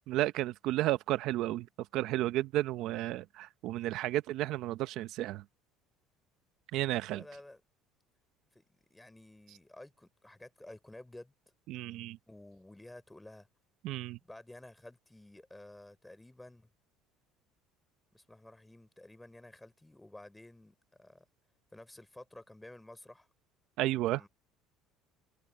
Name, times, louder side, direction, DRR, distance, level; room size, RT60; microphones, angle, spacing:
voice 1, 0.0-1.7 1.9-5.4 6.7-7.2 11.7-12.2 13.8-14.2 23.8-24.2, right 15 dB, 65° right, 0.8 m, -32 dB
voice 2, 7.1-7.6 8.5-8.6 8.9-11.3 12.3-13.5 14.2-16.7 18.1-21.3 21.7-23.3 24.1-24.3, left 1 dB, 5° left, 3.6 m, -52 dB
supercardioid pair, 110°, 0 cm